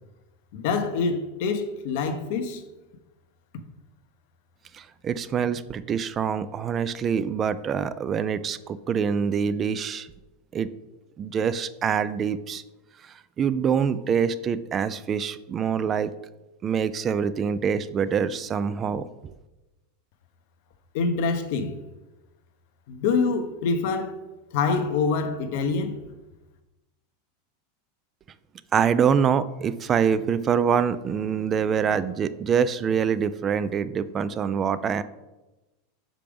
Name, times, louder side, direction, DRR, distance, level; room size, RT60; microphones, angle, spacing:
voice 1, 0.5-2.6 20.9-21.8 22.9-24.2 24.5-25.9, left 4 dB, 60° left, 0.7 m, -25 dB
voice 2, 4.7-10.1 10.5-10.7 11.2-12.6 13.4-16.1 16.6-19.0 28.7-35.0, right 7 dB, 30° right, 0.3 m, -25 dB
5.8 x 5.0 x 3.5 m
hypercardioid pair, 95°, 0 cm